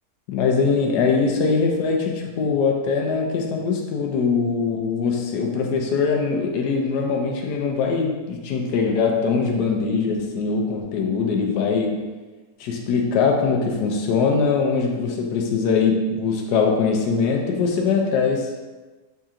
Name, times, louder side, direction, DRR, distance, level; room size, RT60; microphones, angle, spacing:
voice 1, 0.3-12.0 12.6-18.5, left 5 dB, 80° left, 2 dB, 1.2 m, -22 dB
4.4 x 2.9 x 3.6 m, 1.2 s
omnidirectional pair, 1.7 m